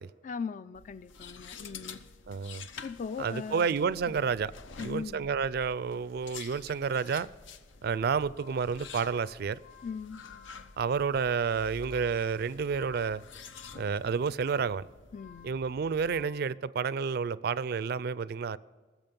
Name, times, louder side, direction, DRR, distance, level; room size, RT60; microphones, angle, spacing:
voice 1, 0.2-2.0 2.8-3.7 4.1-4.3 4.8-5.3 9.8-10.2 15.1-15.6, left 5 dB, 40° left, 0.3 m, -39 dB
sound 1, 0.7-16.2, left 5 dB, 80° left, 0.7 m, -49 dB
sound 2, 1.5-5.5 5.9-6.2, right 1 dB, 20° left, 0.9 m, -66 dB
voice 2, 2.3-2.7 3.2-4.5 4.8-7.3 7.8-9.6 10.8-13.2 13.8-14.9 15.4-18.6, right 6 dB, 55° right, 0.4 m, -30 dB
sound 3, 8.3-16.5, left 7 dB, 60° left, 1.2 m, -56 dB
19.5 x 7.2 x 5.3 m
head